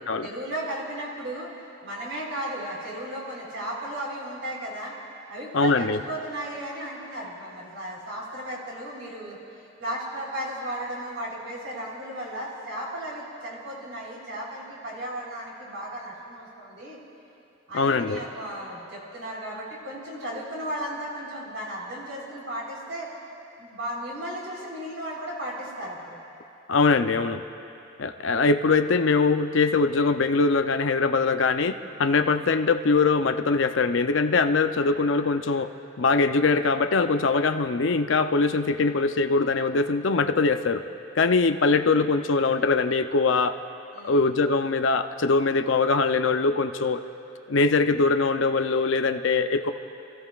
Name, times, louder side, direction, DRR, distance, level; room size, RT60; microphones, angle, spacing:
voice 1, 0.2-1.5 1.8-5.0 5.3-9.4 9.8-17.0 17.7-23.1 23.6-26.2 43.9-44.2, right 1 dB, 70° right, -4 dB, 3.8 m, -35 dB
voice 2, 5.5-6.0 17.7-18.2 26.7-27.4 28.0-35.7 36.0-40.8 41.2-43.6 44.0-47.0 47.5-49.7, left 4 dB, 70° left, 8 dB, 0.6 m, -22 dB
28.5 x 15.5 x 2.4 m, 2.8 s
head